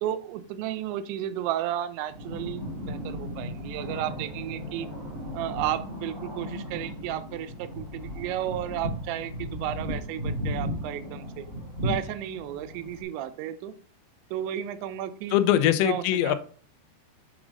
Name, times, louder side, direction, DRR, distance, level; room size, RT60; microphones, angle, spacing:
voice 1, 0.0-4.9 5.3-11.5 11.8-13.7 14.3-15.4 15.8-16.4, right 12 dB, 85° right, 12 dB, 2.9 m, -33 dB
sound 1, 2.1-13.0, equal, 30° right, 0.9 m, -36 dB
sound 2, 3.9-10.5, equal, 50° right, 3.5 m, -48 dB
voice 2, 15.3-16.4, left 12 dB, 90° left, 10 dB, 2.9 m, -22 dB
7.3 x 6.1 x 2.5 m, 0.42 s
omnidirectional pair, 5.1 m